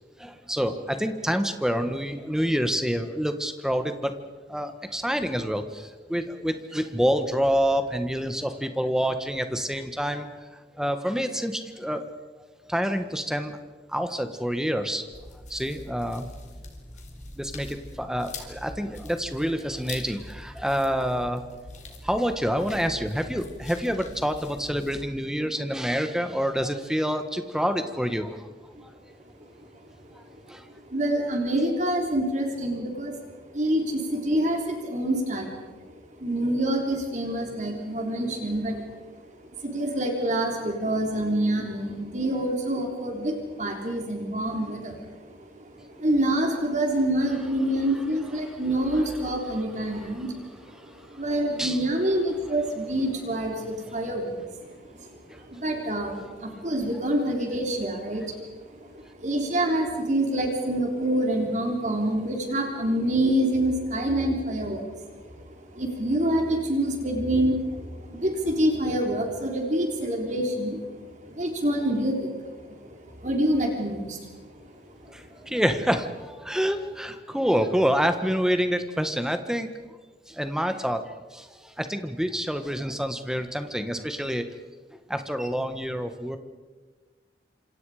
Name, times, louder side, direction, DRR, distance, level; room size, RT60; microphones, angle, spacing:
voice 1, 0.2-4.1 4.5-10.3 10.8-12.0 12.6-13.6 13.9-15.0 15.5-16.3 17.4-21.4 22.0-28.5 28.8-28.9 30.1-30.7 48.4-48.6 49.2-49.6 51.6-51.8 55.3-55.6 75.1-79.7 80.3-84.4 84.9-86.4, equal, 5° right, 7 dB, 1.5 m, -27 dB
sound 1, 15.1-25.1, left 2 dB, 40° left, 3.7 m, -43 dB
voice 2, 30.9-33.2 33.5-35.6 35.9-36.0 36.2-39.0 39.4-50.4 51.1-54.5 55.0-58.5 58.8-70.8 71.2-74.3 74.6-74.7, right 1 dB, 40° right, 2 dB, 3.6 m, -27 dB
28.0 x 26.5 x 5.0 m, 1.3 s
head